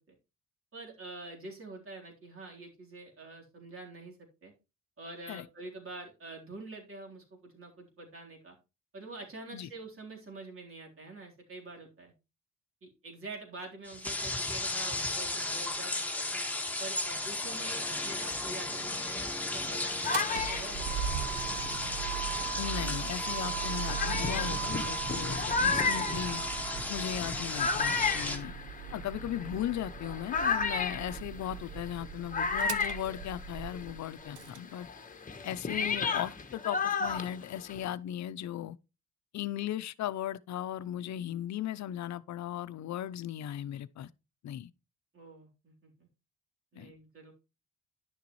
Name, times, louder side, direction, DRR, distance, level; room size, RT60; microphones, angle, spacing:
voice 1, 0.7-4.2 4.4-4.5 5.0-8.6 8.9-12.1 12.8-16.4 16.8-21.3 45.1-46.1 46.7-47.3, right 2 dB, 45° right, 3.8 m, -46 dB
sound 1, 13.8-28.4, left 2 dB, 5° left, 1.7 m, -35 dB
sound 2, 19.6-22.6 23.3-23.4 23.9-33.9 34.2-37.9, left 5 dB, 25° left, 1.2 m, -33 dB
Motor vehicle (road), 19.9-34.6, right 9 dB, 80° right, 0.9 m, -39 dB
voice 2, 22.6-26.4 26.9-28.5 28.9-34.9 35.4-38.8 39.3-44.1 44.4-44.7 46.7-46.9, left 11 dB, 65° left, 0.7 m, -37 dB
10.5 x 6.8 x 3.1 m
cardioid pair, 90°, 30 cm